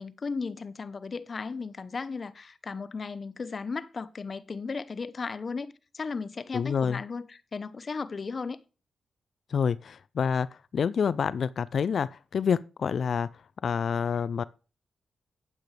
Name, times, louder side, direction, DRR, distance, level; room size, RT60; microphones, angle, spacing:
voice 1, 0.0-8.6, left 4 dB, 50° left, 0.9 m, -35 dB
voice 2, 6.5-7.0 9.5-13.3 13.6-14.4, left 6 dB, 65° left, 0.4 m, -28 dB
11.5 x 9.0 x 3.4 m
cardioid pair, 75°, 0 cm